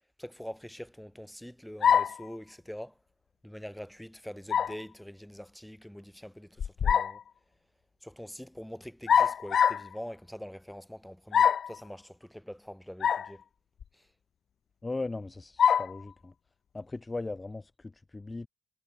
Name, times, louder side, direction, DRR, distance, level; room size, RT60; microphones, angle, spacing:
voice 1, 0.2-3.0 3.4-7.2 8.0-13.4 13.9-14.0, equal, 5° left, 4.5 m, -44 dB
sound 1, 1.8-2.3 4.5-4.8 6.6-7.2 9.1-9.9 11.3-11.8 13.0-13.3 13.8-13.9 15.6-16.0, left 8 dB, 55° left, 0.5 m, -24 dB
voice 2, 14.8-16.3 16.7-18.5, left 3 dB, 20° left, 2.7 m, -38 dB
cardioid pair, 90°, 0 cm